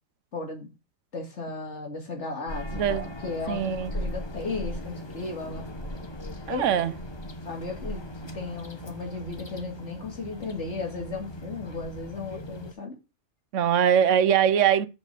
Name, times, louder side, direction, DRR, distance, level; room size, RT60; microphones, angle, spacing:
voice 1, 0.3-0.7 1.1-5.7 6.5-6.8 7.4-13.0, left 3 dB, 70° left, 2.5 m, -35 dB
sound 1, 2.5-12.7, left 1 dB, 25° left, 0.9 m, -38 dB
voice 2, 2.7-3.1 3.5-3.9 6.5-6.9 13.5-14.9, right 9 dB, 85° right, 1.0 m, -22 dB
6.3 x 5.3 x 6.6 m
omnidirectional pair, 1.2 m